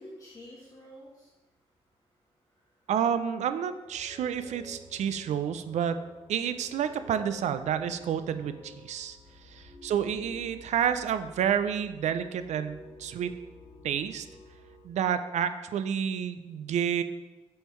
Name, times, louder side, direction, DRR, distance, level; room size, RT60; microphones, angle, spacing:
voice 1, 0.0-1.5 2.0-3.2 14.8-14.9, equal, 30° left, -5 dB, 1.3 m, -51 dB
voice 2, 2.9-6.0 6.3-9.2 9.4-13.3 13.8-14.3 14.8-17.0, right 8 dB, 90° right, 11 dB, 0.4 m, -29 dB
sound 1, 3.9-14.8, left 1 dB, 5° left, 2.4 m, -51 dB
7.8 x 5.3 x 3.1 m, 1.1 s
wide cardioid pair, 150°, 12 cm